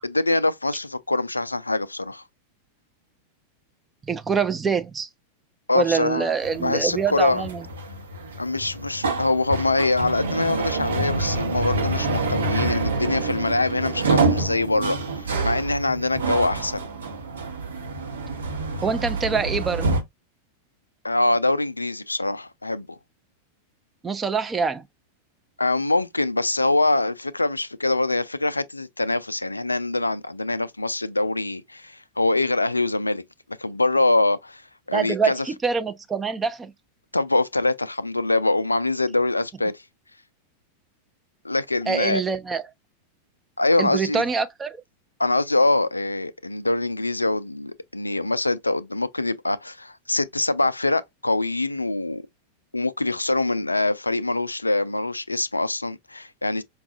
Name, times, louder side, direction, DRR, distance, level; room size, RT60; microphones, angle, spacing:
voice 1, 0.0-2.2 5.7-6.3 6.6-7.4 8.4-15.0 15.4-16.8 21.0-23.0 25.6-33.2 33.6-34.6 34.9-35.4 37.1-39.7 41.4-42.2 43.6-44.3 45.2-52.2 52.7-56.6, left 2 dB, 85° left, 0.3 m, -24 dB
voice 2, 4.1-5.1 5.7-7.7 18.8-20.0 24.0-24.8 34.9-36.7 41.9-42.6 43.8-44.8, right 5 dB, 15° right, 0.4 m, -25 dB
sound 1, 6.4-20.0, right 3 dB, 70° right, 0.9 m, -27 dB
5.2 x 2.3 x 2.3 m
figure-of-eight pair, 90°, 0 cm